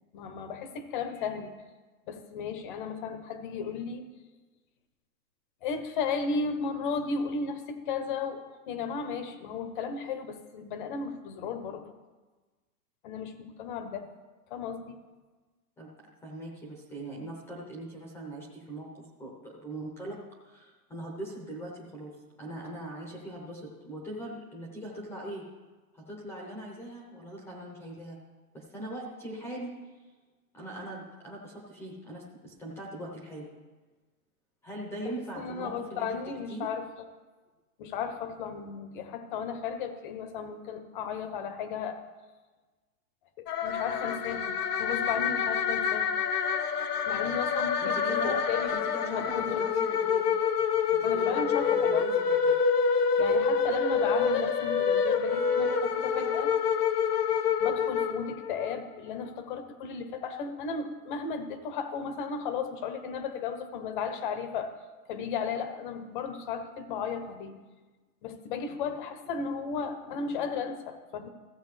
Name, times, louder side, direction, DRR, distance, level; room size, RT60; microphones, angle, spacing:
voice 1, 0.1-1.5 2.1-4.1 5.6-11.9 13.0-14.0 14.5-15.0 35.4-36.9 37.8-42.0 43.4-46.1 47.1-48.7 49.1-49.8 51.0-52.1 53.2-56.5 57.6-64.7 65.1-67.6 68.2-71.3, left 5 dB, 35° left, 9 dB, 0.8 m, -35 dB
voice 2, 16.2-20.2 20.4-25.4 25.9-28.2 28.5-30.0 30.5-33.5 34.6-36.1 36.5-36.7 47.8-50.3 50.9-52.6, right 1 dB, 5° left, -2 dB, 0.7 m, -41 dB
sound 1, 43.5-58.8, left 6 dB, 80° left, 0.9 m, -27 dB
15.0 x 7.9 x 3.3 m, 1.3 s
hypercardioid pair, 160°, 46 cm